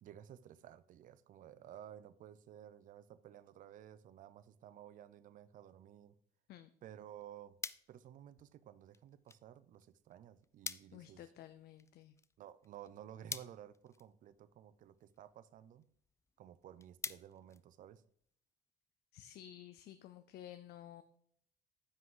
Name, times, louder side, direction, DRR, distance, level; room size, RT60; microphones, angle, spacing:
voice 1, 0.0-6.2 6.8-7.6 7.9-11.3 12.4-15.9 16.4-18.0, right 10 dB, 50° right, 0.5 m, -55 dB
sound 1, 7.0-18.3, left 4 dB, 15° left, 0.3 m, -51 dB
voice 2, 10.9-12.1 19.1-21.0, left 12 dB, 70° left, 0.5 m, -53 dB
9.6 x 6.0 x 3.8 m
cardioid pair, 110°, 17 cm